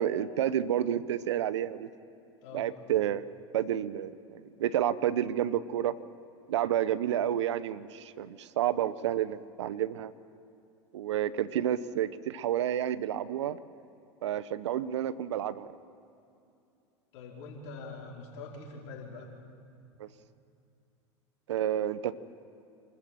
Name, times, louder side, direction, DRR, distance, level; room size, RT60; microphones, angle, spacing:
voice 1, 0.0-1.9 2.5-3.2 3.5-5.9 6.5-10.1 10.9-13.6 14.2-15.7 20.0-20.1 21.5-22.1, right 11 dB, 80° right, 17 dB, 0.8 m, -30 dB
voice 2, 17.1-19.3, left 3 dB, 60° left, -2 dB, 4.9 m, -44 dB
27.0 x 14.0 x 7.6 m, 2.6 s
hypercardioid pair, 95°, 15 cm